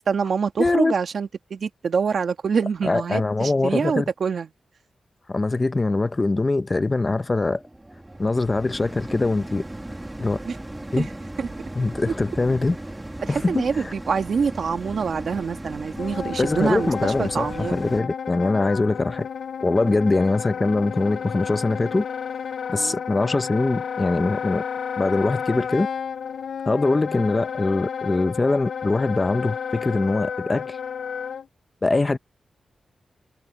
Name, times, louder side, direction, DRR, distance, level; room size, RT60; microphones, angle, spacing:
voice 1, 0.1-4.5 10.4-10.5 11.0-11.1 11.4-11.5 13.3-17.8 19.8-20.0 22.7-23.0, right 6 dB, 60° right, 1.5 m, -25 dB
voice 2, 0.6-0.9 2.8-4.1 5.3-7.6 8.2-9.6 10.2-10.4 10.9-11.1 11.7-12.8 13.3-13.9 16.4-19.3 19.6-22.0 22.7-24.6 25.0-25.9 26.7-30.8 31.8-32.2, left 2 dB, 25° left, 0.7 m, -22 dB
sound 1, 6.8-18.0, right 1 dB, 10° right, 2.2 m, -37 dB
Wind instrument woodwind instrument, 15.9-31.4, left 7 dB, 70° left, 0.5 m, -31 dB
wide cardioid pair, 145°, 0 cm